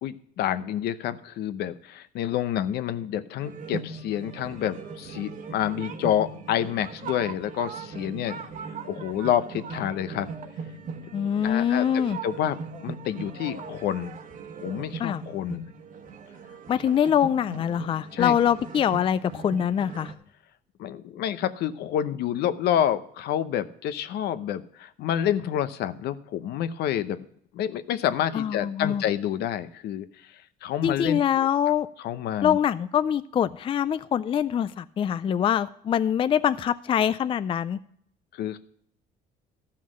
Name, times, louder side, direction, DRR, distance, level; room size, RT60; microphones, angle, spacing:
voice 1, 0.0-8.4 8.9-10.3 11.4-11.8 12.2-14.2 14.6-15.7 18.1-18.3 20.8-27.2 27.5-30.1 30.6-31.5 32.0-32.6 38.3-38.6, left 10 dB, 75° left, 13 dB, 0.8 m, -28 dB
sound 1, 3.4-20.1, right 5 dB, 50° right, 1.2 m, -39 dB
voice 2, 11.1-12.2 15.0-15.2 16.7-20.1 28.3-29.0 30.8-31.9 32.4-37.8, left 9 dB, 30° left, 14 dB, 0.3 m, -24 dB
13.0 x 5.8 x 6.3 m, 0.68 s
cardioid pair, 110°, 17 cm